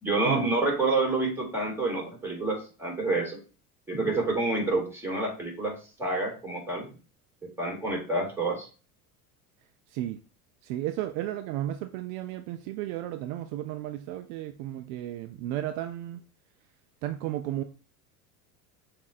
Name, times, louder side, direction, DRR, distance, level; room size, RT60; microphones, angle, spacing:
voice 1, 0.0-3.4 3.9-6.9 7.6-8.7, right 2 dB, 5° right, 2.2 m, -28 dB
voice 2, 10.6-16.2 17.0-17.6, right 13 dB, 65° right, 0.5 m, -33 dB
7.1 x 2.6 x 2.5 m
hypercardioid pair, 80°, 46 cm